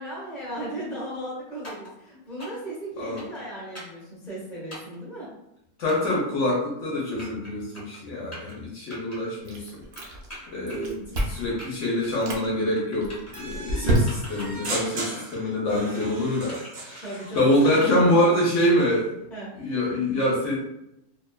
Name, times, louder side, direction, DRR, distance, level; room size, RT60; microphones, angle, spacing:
voice 1, 0.0-5.3 17.0-18.6 19.3-19.5, right 1 dB, ahead, -7 dB, 0.6 m, -36 dB
sound 1, 1.6-1.9 2.4-2.7 3.2-3.4 3.7-4.0 4.7-5.0 5.9-6.2 6.9-7.5 7.7-8.0 8.3-8.5 8.9-9.2 10.0-10.9 11.2-11.7 12.0-12.5 12.8-13.4 13.9-15.5 15.8-16.1 16.5-18.0, equal, 30° left, 1.0 m, -42 dB
voice 2, 5.8-9.8 10.5-17.0 17.3-19.1 19.6-20.5, left 1 dB, 65° left, -4 dB, 0.9 m, -25 dB
Chewing mastication, 9.5-10.4 10.7-11.5 12.0-12.5 13.0-14.5, right 1 dB, 65° right, 0.6 m, -28 dB
sound 2, 13.3-17.4, right 2 dB, 80° right, 1.1 m, -37 dB
2.7 x 2.2 x 2.2 m, 0.83 s
omnidirectional pair, 1.5 m